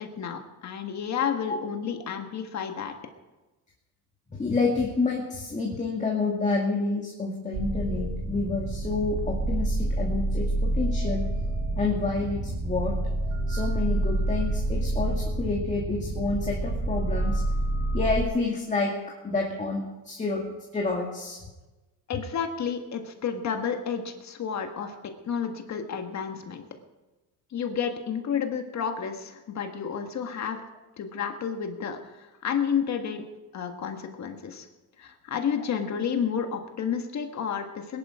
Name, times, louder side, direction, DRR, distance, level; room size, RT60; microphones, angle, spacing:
voice 1, 0.0-2.9 22.1-25.0 25.3-26.6 27.5-30.6 31.0-33.2 33.5-34.7 35.0-38.0, left 7 dB, 45° left, 5 dB, 1.7 m, -31 dB
voice 2, 4.3-11.3 11.8-13.0 13.5-17.4 17.9-19.0 19.2-21.4 24.8-24.9 32.8-33.1 35.6-35.7, left 3 dB, 20° left, -1 dB, 2.1 m, -29 dB
sound 1, 7.5-18.2, right 2 dB, 55° right, 3.4 m, -28 dB
20.5 x 11.0 x 5.0 m, 1.1 s
cardioid pair, 125°, 38 cm